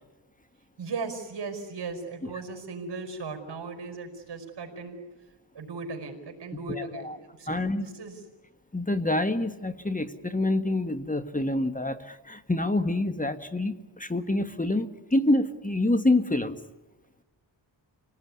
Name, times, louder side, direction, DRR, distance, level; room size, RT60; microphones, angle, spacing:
voice 1, 0.8-5.0 5.5-8.2, right 4 dB, 60° right, 4 dB, 4.8 m, -37 dB
voice 2, 6.7-7.2 7.5-7.9 8.7-16.6, left 2 dB, 15° left, 9 dB, 1.6 m, -27 dB
29.0 x 18.5 x 9.7 m, 1.1 s
cardioid pair, 75°, 45 cm